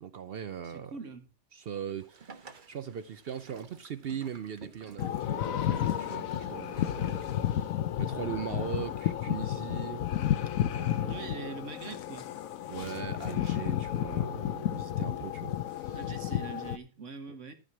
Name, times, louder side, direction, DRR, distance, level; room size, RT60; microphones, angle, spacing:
voice 1, 0.0-1.0 1.5-10.1 10.7-11.6 12.7-16.1 17.3-17.4, right 8 dB, 70° right, 0.5 m, -40 dB
voice 2, 0.6-1.3 11.0-12.3 15.9-17.5, right 4 dB, 55° right, 1.7 m, -43 dB
Boat Water vehicle, 2.0-7.3, right 5 dB, 35° right, 1.0 m, -51 dB
sound 1, 5.0-16.8, left 11 dB, 65° left, 1.1 m, -32 dB
13.5 x 4.7 x 5.9 m
omnidirectional pair, 1.6 m